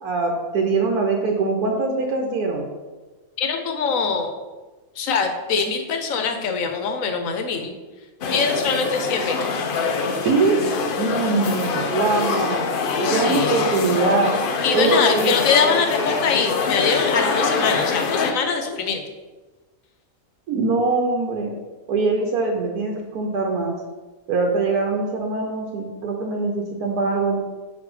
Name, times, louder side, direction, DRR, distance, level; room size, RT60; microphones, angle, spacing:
voice 1, 0.0-2.6 10.2-10.6 11.0-12.7 13.0-14.3 14.7-15.3 20.5-21.5 21.9-23.8 24.3-27.4, right 3 dB, 80° right, 0 dB, 1.3 m, -22 dB
voice 2, 3.4-4.3 5.0-7.7 8.3-9.5 13.0-13.6 14.6-19.0, left 5 dB, 65° left, 6 dB, 1.1 m, -23 dB
sound 1, 8.2-18.3, left 4 dB, 90° left, 0.4 m, -24 dB
5.4 x 4.0 x 4.8 m, 1.2 s
omnidirectional pair, 1.6 m